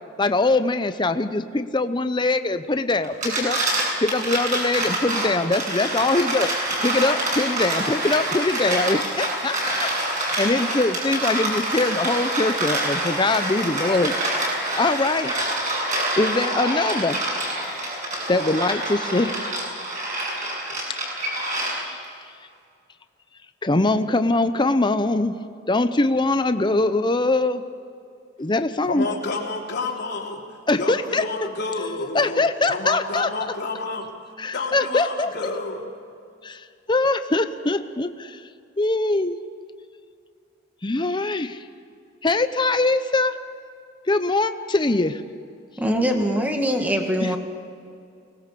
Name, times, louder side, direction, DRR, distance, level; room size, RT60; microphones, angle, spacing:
voice 1, 0.2-3.6 4.0-6.5 6.8-9.9 10.4-14.1 14.8-15.6 16.2-17.3 18.3-19.6 23.6-25.3 25.7-27.6 28.4-29.1 30.7-31.2 32.1-33.3 34.4-35.3 36.4-38.4 38.8-39.4 40.8-41.6 42.2-43.3 44.1-45.2 47.2-47.3, left 2 dB, 25° left, 10 dB, 0.7 m, -22 dB
sound 1, 3.0-22.1, right 1 dB, 40° right, 7.8 m, -26 dB
voice 2, 28.8-30.4 30.8-34.0 34.5-35.9, left 3 dB, 60° left, 0 dB, 3.4 m, -29 dB
voice 3, 45.8-47.4, equal, 10° right, 3 dB, 2.0 m, -22 dB
25.0 x 19.5 x 6.9 m, 2.4 s
head